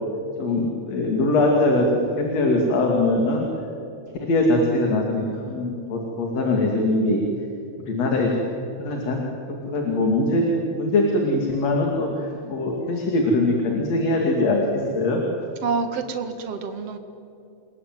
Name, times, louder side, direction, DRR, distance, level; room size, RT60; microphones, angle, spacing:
voice 1, 0.4-3.5 4.2-7.2 7.9-8.5 8.8-9.2 9.5-15.2, left 2 dB, 60° left, 1 dB, 3.7 m, -22 dB
voice 2, 15.6-17.0, right 5 dB, 55° right, 7 dB, 2.7 m, -27 dB
28.0 x 22.0 x 9.4 m, 2.7 s
omnidirectional pair, 3.4 m